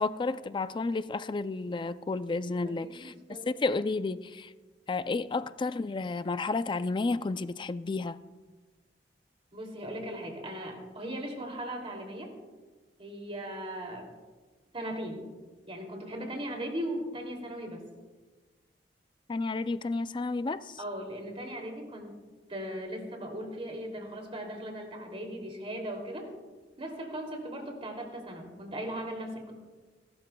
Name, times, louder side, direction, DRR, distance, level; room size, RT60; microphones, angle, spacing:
voice 1, 0.0-3.1 3.5-4.5 4.9-8.2 19.3-20.8, left 3 dB, 25° left, 0.4 m, -31 dB
voice 2, 2.6-3.5 9.5-12.3 13.0-14.1 14.7-15.3 15.7-17.8 20.8-22.1 22.5-26.3 26.8-29.5, right 1 dB, 35° right, 2.8 m, -38 dB
28.5 x 12.5 x 2.3 m
head